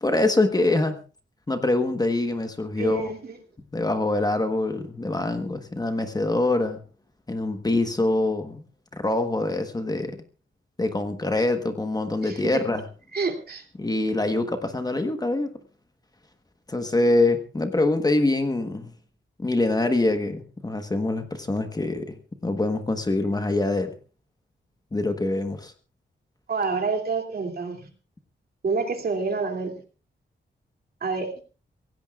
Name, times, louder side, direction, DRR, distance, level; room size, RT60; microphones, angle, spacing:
voice 1, 0.0-1.0 1.5-3.1 3.7-6.8 7.3-8.6 8.9-10.2 10.8-12.8 13.8-15.5 16.7-18.9 19.4-22.2 22.4-23.9 24.9-25.7, left 2 dB, 20° left, 7 dB, 1.2 m, -24 dB
voice 2, 2.8-3.4 12.2-12.6 13.1-13.6 26.5-27.9 28.6-29.7 31.0-31.3, right 4 dB, 55° right, 4 dB, 2.7 m, -28 dB
25.0 x 17.0 x 2.4 m, 0.37 s
wide cardioid pair, 150°, 19 cm